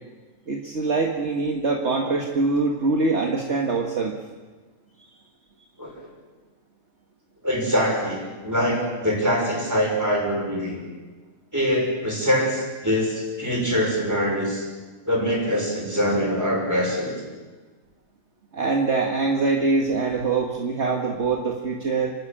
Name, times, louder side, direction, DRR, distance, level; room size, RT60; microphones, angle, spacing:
voice 1, 0.5-4.2 18.5-22.1, right 3 dB, 50° right, 0 dB, 2.0 m, -23 dB
voice 2, 7.4-10.8 11.5-14.7 15.1-17.1, equal, 10° right, -1 dB, 6.0 m, -24 dB
29.5 x 12.5 x 8.7 m, 1.4 s
omnidirectional pair, 1.5 m